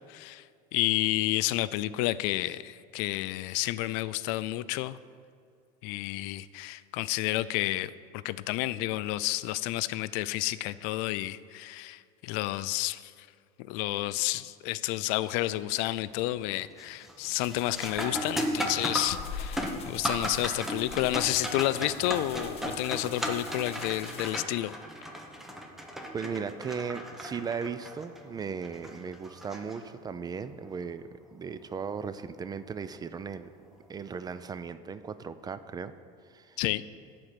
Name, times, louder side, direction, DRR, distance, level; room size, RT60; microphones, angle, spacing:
voice 1, 0.1-0.4 0.7-5.0 5.8-7.9 8.2-13.0 13.7-24.8 36.6-36.8, left 16 dB, 65° left, 17 dB, 0.4 m, -30 dB
sound 1, 15.2-15.6 16.0-16.4 16.8-30.3 32.8-32.9 33.7-34.0, equal, ahead, 1.0 m, -36 dB
sound 2, 17.4-24.3, left 6 dB, 30° left, 1.0 m, -44 dB
voice 2, 26.1-33.5 33.9-35.9 36.3-36.6, right 6 dB, 20° right, 13 dB, 0.4 m, -37 dB
11.5 x 4.3 x 8.0 m, 2.2 s
supercardioid pair, 125°, 20 cm